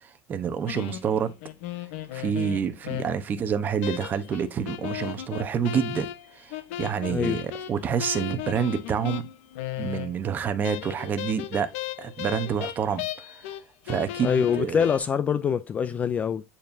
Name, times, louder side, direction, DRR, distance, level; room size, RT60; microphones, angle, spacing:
voice 1, 0.0-1.3 2.1-6.1 6.3-9.3 9.8-11.7 12.0-13.4 13.9-14.9, right 7 dB, 25° right, 0.9 m, -28 dB
sound 1, 0.7-3.3 3.8-10.3 10.6-13.6 13.9-15.0, left 12 dB, 70° left, 0.8 m, -36 dB
voice 2, 7.1-7.4 14.2-16.4, left 7 dB, 20° left, 0.3 m, -24 dB
8.8 x 4.3 x 2.6 m
cardioid pair, 160°, 7 cm